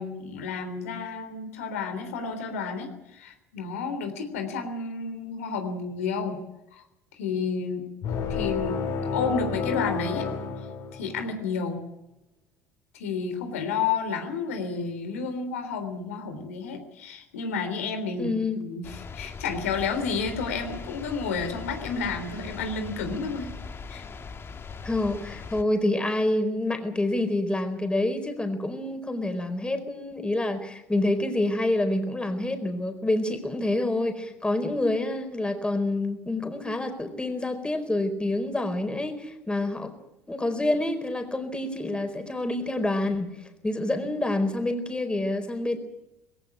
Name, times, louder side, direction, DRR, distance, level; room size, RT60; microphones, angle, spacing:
voice 1, 0.0-6.4 6.7-6.8 7.2-7.8 8.3-8.8 9.1-10.3 10.9-11.9 12.9-23.5 23.9-24.0, left 5 dB, 80° left, 6 dB, 3.5 m, -31 dB
sound 1, 8.0-11.4, left 5 dB, 60° left, 7.3 m, -30 dB
voice 2, 18.2-18.6 24.8-39.9 40.3-43.3 43.6-45.8, left 2 dB, 15° left, 7 dB, 4.4 m, -27 dB
sound 2, 18.8-25.6, left 5 dB, 30° left, 2.1 m, -40 dB
21.0 x 17.5 x 8.5 m, 0.90 s
hypercardioid pair, 65°, 8 cm